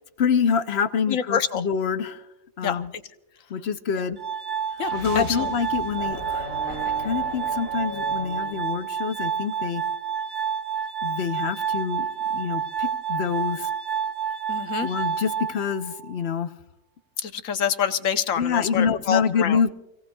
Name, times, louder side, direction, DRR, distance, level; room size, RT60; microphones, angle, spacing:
voice 1, 0.2-2.3 2.6-2.9 3.5-4.2 4.9-9.8 11.0-13.7 14.8-16.5 18.4-19.7, left 6 dB, 55° left, 10 dB, 1.0 m, -26 dB
voice 2, 1.1-1.6 2.6-2.8 4.8-5.5 14.5-14.9 17.2-19.6, left 8 dB, 75° left, 9 dB, 1.2 m, -26 dB
Glass, 4.2-16.2, right 7 dB, 40° right, 1.0 m, -29 dB
sound 1, 4.7-8.7, right 1 dB, 80° right, 2.0 m, -43 dB
sound 2, 5.9-8.8, equal, 55° right, 7.0 m, -37 dB
28.5 x 17.5 x 2.3 m, 0.89 s
omnidirectional pair, 1.4 m